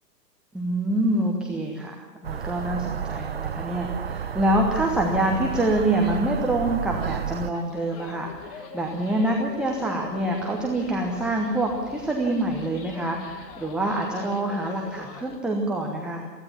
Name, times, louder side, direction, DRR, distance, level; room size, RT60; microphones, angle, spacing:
voice 1, 0.5-16.3, right 1 dB, ahead, -1 dB, 1.1 m, -26 dB
sound 1, 2.2-7.5, right 8 dB, 40° right, 0.5 m, -31 dB
sound 2, 7.5-15.4, left 5 dB, 20° left, 1.4 m, -43 dB
23.5 x 15.5 x 7.4 m, 1.5 s
figure-of-eight pair, 125°, 50 cm